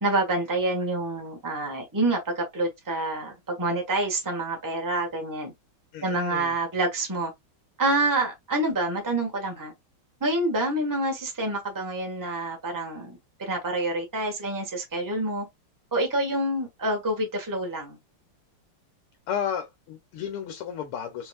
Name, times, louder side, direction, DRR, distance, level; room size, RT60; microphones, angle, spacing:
voice 1, 0.0-5.5 6.0-7.3 7.8-9.7 10.2-15.5 15.9-18.0, right 2 dB, 10° right, 1.2 m, -27 dB
voice 2, 5.9-6.5 19.3-21.3, left 8 dB, 90° left, 1.7 m, -33 dB
4.5 x 4.1 x 2.4 m
omnidirectional pair, 2.4 m